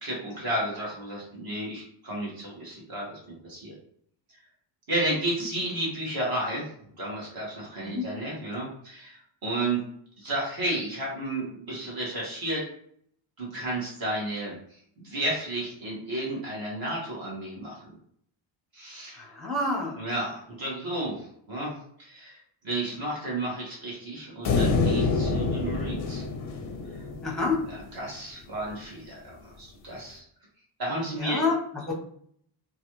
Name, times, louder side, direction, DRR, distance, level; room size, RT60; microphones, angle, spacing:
voice 1, 0.0-3.2 3.5-3.7 4.9-6.7 7.0-9.8 10.2-12.7 13.4-17.8 18.7-19.3 19.9-21.7 22.0-22.4 22.6-26.2 27.7-30.2 30.8-31.5, right 1 dB, 50° right, -4 dB, 1.4 m, -32 dB
voice 2, 19.2-19.9 27.2-27.6 31.2-31.6 31.9-32.0, left 3 dB, ahead, -2 dB, 0.7 m, -27 dB
sound 1, 24.4-27.8, left 3 dB, 35° left, 0.4 m, -27 dB
3.1 x 2.4 x 3.0 m, 0.65 s
cardioid pair, 135°, 48 cm